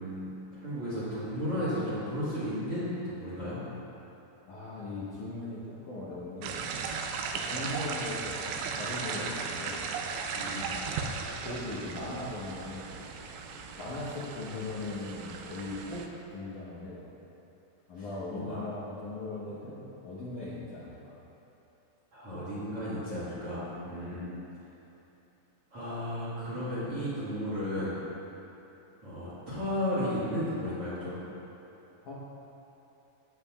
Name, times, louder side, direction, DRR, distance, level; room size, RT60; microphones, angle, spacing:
voice 1, 0.0-3.6 10.3-10.8 18.0-18.1 18.3-18.6 22.1-24.3 25.7-28.0 29.0-31.2, equal, 45° right, -12 dB, 2.0 m, -34 dB
voice 2, 4.5-6.6 7.3-9.8 10.6-11.0 11.4-13.0 13.8-17.1 17.9-21.2 23.9-24.2 32.0-32.1, left 2 dB, 75° left, -8 dB, 1.8 m, -39 dB
sound 1, 6.4-16.1, right 5 dB, 85° right, 3.0 m, -36 dB
16.5 x 7.4 x 2.4 m, 3.0 s
omnidirectional pair, 5.5 m